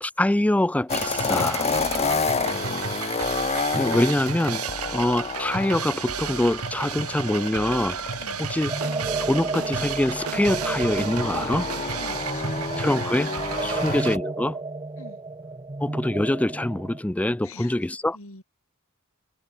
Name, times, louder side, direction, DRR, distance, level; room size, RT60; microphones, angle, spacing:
voice 1, 0.0-1.7 3.7-4.6 4.9-8.0 8.4-8.7 9.2-11.7 12.8-13.3 13.6-14.6 15.8-18.2, left 1 dB, 5° left, 0.3 m, -24 dB
sound 1, 0.9-14.2, left 5 dB, 30° left, 0.9 m, -30 dB
sound 2, 0.9-14.2, right 6 dB, 85° right, 2.4 m, -32 dB
sound 3, 8.7-17.0, right 3 dB, 20° right, 0.8 m, -32 dB
voice 2, 11.9-12.6 13.6-13.9 15.0-15.2 17.4-18.4, left 2 dB, 65° left, 5.4 m, -46 dB
head